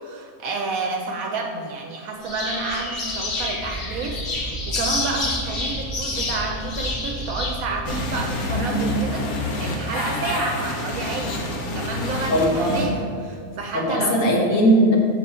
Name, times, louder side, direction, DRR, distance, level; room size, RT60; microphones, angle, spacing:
voice 1, 0.0-14.2, right 3 dB, 75° right, 2 dB, 1.0 m, -30 dB
sound 1, 2.2-7.6, left 2 dB, 45° left, 1.0 m, -29 dB
Wind, 2.3-8.7, right 1 dB, 5° right, 1.1 m, -35 dB
sound 2, 7.9-12.9, left 1 dB, 85° left, 1.4 m, -27 dB
voice 2, 12.3-12.9 13.7-15.0, right 1 dB, 65° left, -1 dB, 1.4 m, -19 dB
6.7 x 4.7 x 4.3 m, 2.2 s
omnidirectional pair, 1.5 m